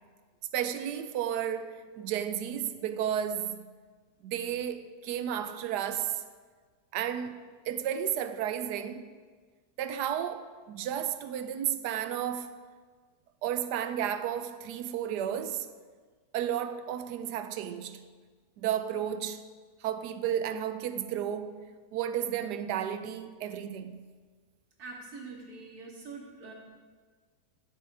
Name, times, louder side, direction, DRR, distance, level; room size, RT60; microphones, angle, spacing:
voice 1, 0.5-3.6 4.2-6.2 6.9-7.4 7.7-9.1 9.8-12.5 13.4-15.7 16.3-18.0 18.6-19.4 19.8-24.0, right 9 dB, 90° right, 1.2 m, -33 dB
voice 2, 24.8-26.5, right 3 dB, 65° right, 2.4 m, -44 dB
12.5 x 7.7 x 4.9 m
omnidirectional pair, 1.7 m